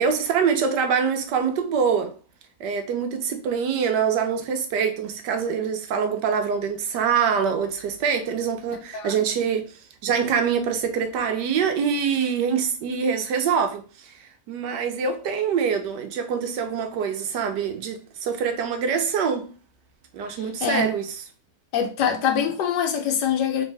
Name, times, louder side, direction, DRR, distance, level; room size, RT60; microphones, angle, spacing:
voice 1, 0.0-2.1 2.6-9.7 10.0-14.2 14.5-19.5 20.1-21.2, right 6 dB, 90° right, 1.4 m, -24 dB
voice 2, 20.4-20.9 21.7-23.6, left 8 dB, 85° left, 1.4 m, -24 dB
3.5 x 3.3 x 3.3 m
omnidirectional pair, 1.8 m